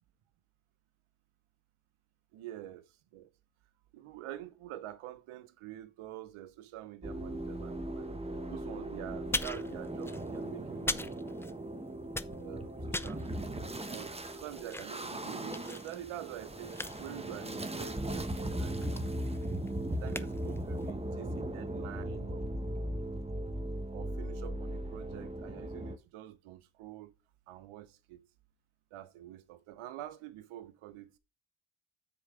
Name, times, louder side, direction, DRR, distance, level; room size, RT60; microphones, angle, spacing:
voice 1, 2.3-3.3 3.9-8.1 8.5-11.5 12.4-13.5 13.9-19.4 19.7-22.6 23.9-27.2 27.5-28.3 28.9-31.1, right 13 dB, 85° right, 1.0 m, -47 dB
sound 1, 7.0-26.0, right 1 dB, 10° right, 1.1 m, -38 dB
sound 2, 9.3-11.8 12.0-20.9, left 2 dB, 5° left, 0.5 m, -41 dB
7.1 x 4.7 x 4.8 m
supercardioid pair, 60°, 48 cm